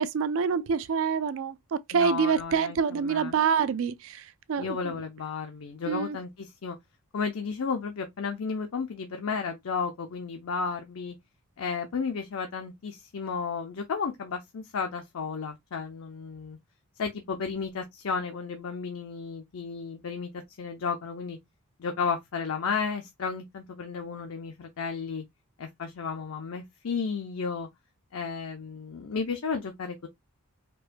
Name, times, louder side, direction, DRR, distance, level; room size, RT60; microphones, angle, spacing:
voice 1, 0.0-4.2 4.5-4.9 5.9-6.2, right 6 dB, 60° right, 0.4 m, -26 dB
voice 2, 1.9-3.4 4.6-6.8 7.1-11.2 11.6-16.6 17.0-21.4 21.8-25.2 25.6-27.7 28.1-30.1, left 5 dB, 65° left, 0.5 m, -33 dB
4.5 x 2.2 x 2.5 m
head